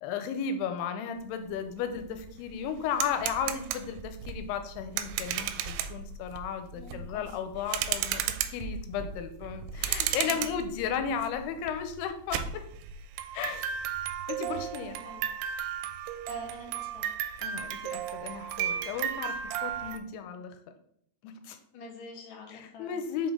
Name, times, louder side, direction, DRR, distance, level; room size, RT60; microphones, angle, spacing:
voice 1, 0.0-12.6 13.3-13.9 14.3-15.0 17.4-20.6 21.2-21.6 22.5-23.3, left 7 dB, 90° left, 8 dB, 2.6 m, -34 dB
sound 1, 1.6-1.7 2.0-20.0, right 9 dB, 85° right, 2.6 m, -35 dB
voice 2, 6.7-7.4 10.2-10.6 15.0-15.2 16.2-17.0 21.7-22.9, left 3 dB, 65° left, -1 dB, 1.1 m, -46 dB
5.6 x 5.2 x 3.6 m, 0.67 s
omnidirectional pair, 4.6 m